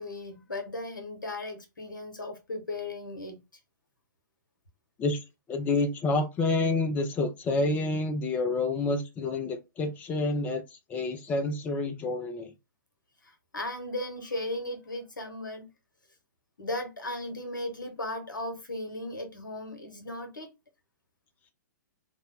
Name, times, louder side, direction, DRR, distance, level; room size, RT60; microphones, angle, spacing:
voice 1, 0.0-3.4 13.2-15.7 16.6-20.5, left 1 dB, 75° left, 1.0 m, -36 dB
voice 2, 5.5-12.5, left 2 dB, 15° left, 0.4 m, -28 dB
2.6 x 2.1 x 3.8 m
figure-of-eight pair, 115°, 11 cm